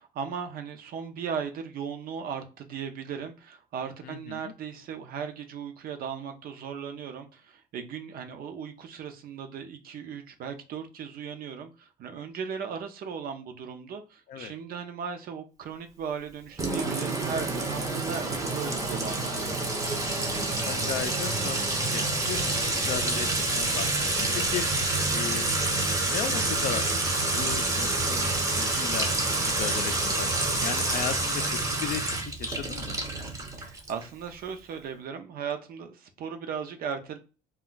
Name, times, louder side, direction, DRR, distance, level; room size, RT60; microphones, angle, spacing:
voice 1, 0.0-19.5 24.2-24.6 33.4-37.2, right 6 dB, 60° right, 7 dB, 0.6 m, -37 dB
voice 2, 4.0-4.5 14.3-14.5 20.3-24.7 25.1-25.5 25.9-26.9 27.3-29.1 29.5-33.0, left 9 dB, 55° left, 9 dB, 0.4 m, -36 dB
Sink (filling or washing) / Trickle dribble / Fill (with liquid), 16.6-34.0, right 2 dB, 20° right, 0.6 m, -28 dB
2.3 x 2.1 x 3.8 m, 0.33 s
cardioid pair, 110°, 17 cm